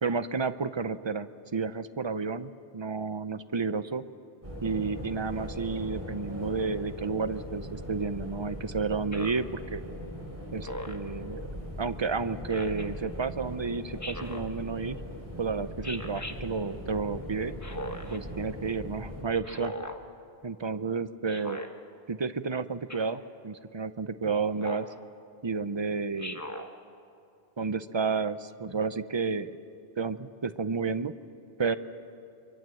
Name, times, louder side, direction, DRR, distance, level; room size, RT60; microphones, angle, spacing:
voice 1, 0.0-4.0 4.6-9.8 10.5-11.4 11.8-15.0 15.4-17.6 18.1-19.7 20.4-21.6 22.1-24.9 25.4-26.5 27.6-29.5 30.0-31.1 31.6-31.7, right 4 dB, 30° right, 12 dB, 0.6 m, -31 dB
sound 1, 4.4-19.2, equal, 15° right, 6.5 m, -40 dB
Speech synthesizer, 9.1-9.5 10.6-11.1 12.5-12.9 14.0-14.5 15.8-16.4 17.6-18.2 19.4-20.0 21.3-21.7 22.9-23.2 24.6-24.9 26.2-26.7, left 1 dB, 15° left, 1.2 m, -39 dB
24.5 x 24.5 x 7.7 m, 2.5 s
omnidirectional pair, 1.1 m